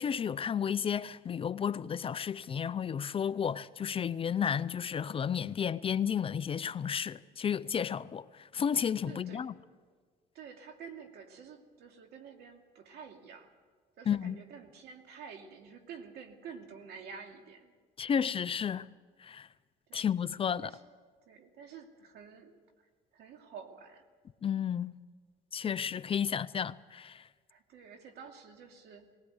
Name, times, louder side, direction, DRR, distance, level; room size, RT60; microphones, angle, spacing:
voice 1, 0.0-9.5 14.1-14.4 18.0-18.9 19.2-19.5 19.9-20.7 24.4-25.0 25.5-27.3, left 8 dB, 35° left, 0.5 m, -32 dB
voice 2, 9.0-9.5 10.3-13.5 14.0-17.7 19.9-20.2 20.6-20.8 21.3-22.5 22.8-24.0 27.5-29.1, right 6 dB, 75° right, 2.5 m, -49 dB
19.5 x 19.0 x 8.0 m
cardioid pair, 110°, 17 cm